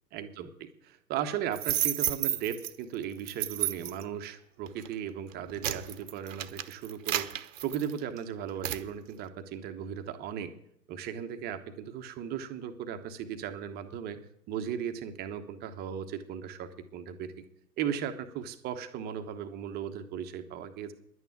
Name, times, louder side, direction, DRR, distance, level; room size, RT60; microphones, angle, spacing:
voice 1, 0.1-7.3 7.6-10.5 10.9-14.2 14.5-17.3 17.8-20.9, right 9 dB, 20° right, 8 dB, 1.0 m, -36 dB
sound 1, 1.5-2.7 3.3-4.0 4.7-4.9 5.3-8.2 8.6-8.9, right 11 dB, 50° right, 1.0 m, -31 dB
11.0 x 9.1 x 9.3 m, 0.73 s
figure-of-eight pair, 120°, 49 cm